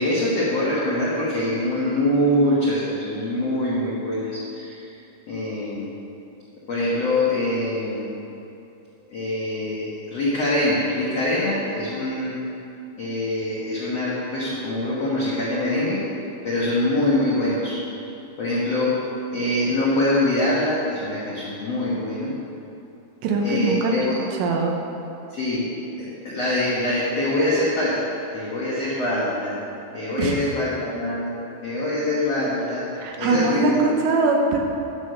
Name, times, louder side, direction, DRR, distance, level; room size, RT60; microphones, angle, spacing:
voice 1, 0.0-4.9 5.3-5.9 6.7-8.1 9.1-12.4 13.0-16.0 16.4-17.8 18.4-19.0 19.3-22.3 23.4-24.2 25.3-25.7 26.0-28.0 28.3-29.6 29.9-31.3 31.6-32.9 33.2-33.8, left 1 dB, 70° left, -7 dB, 1.5 m, -24 dB
voice 2, 23.2-24.7 30.2-30.4 33.0-34.6, right 3 dB, 80° right, 1 dB, 3.1 m, -22 dB
9.7 x 6.2 x 6.7 m, 2.8 s
omnidirectional pair, 5.2 m